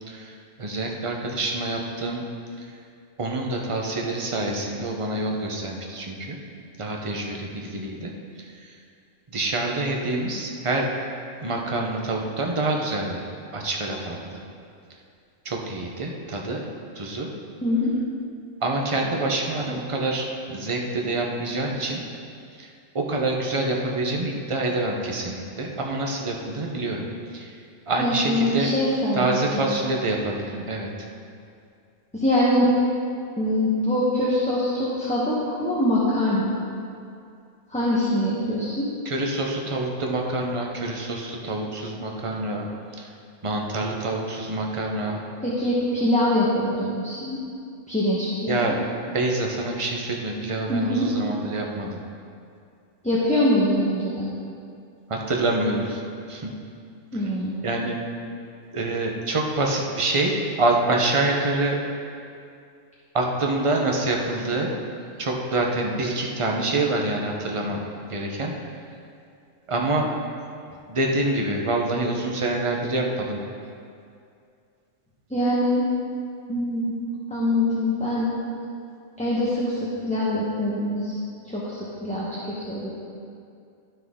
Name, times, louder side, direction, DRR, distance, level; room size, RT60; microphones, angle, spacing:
voice 1, 0.6-2.2 3.2-6.4 6.8-8.1 9.3-10.9 11.4-13.2 13.5-14.2 15.4-16.6 17.0-17.3 18.6-22.0 22.6-22.7 22.9-27.1 27.3-27.5 27.9-28.7 29.1-30.9 39.0-42.7 43.0-43.1 43.4-45.2 48.5-48.8 49.1-52.0 55.1-56.0 56.3-56.5 57.6-58.0 58.7-61.8 63.1-64.7 65.2-68.5 69.7-70.1 70.9-73.4, right 2 dB, 30° right, 0 dB, 0.8 m, -26 dB
voice 2, 17.6-18.0 28.0-29.8 32.1-32.7 33.4-36.6 37.7-38.9 45.4-47.4 47.9-48.8 50.7-51.1 53.0-54.3 57.1-57.7 75.3-75.8 76.5-76.9 77.3-78.3 79.2-81.2 81.5-82.9, left 1 dB, 5° left, -8 dB, 1.0 m, -24 dB
12.0 x 6.2 x 3.7 m, 2.4 s
omnidirectional pair, 1.3 m